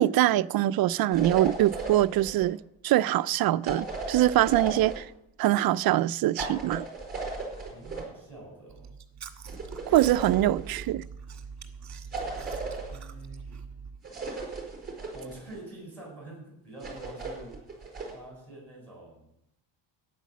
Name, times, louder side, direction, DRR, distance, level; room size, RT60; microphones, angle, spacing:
voice 1, 0.0-2.6 2.8-5.1 5.4-6.8 9.9-11.0, right 14 dB, 55° right, 0.5 m, -23 dB
sound 1, 1.1-2.5 3.6-5.0 6.3-8.1 9.5-10.8 12.1-12.9 14.0-15.6 16.8-18.2, right 3 dB, 20° right, 4.4 m, -36 dB
voice 2, 7.7-8.9 12.7-13.5 15.1-17.5 18.1-19.3, right 1 dB, 5° left, 7.2 m, -46 dB
Chewing mastication, 8.7-14.0, right 6 dB, 40° right, 1.5 m, -43 dB
13.5 x 9.3 x 7.3 m
cardioid pair, 155°, 44 cm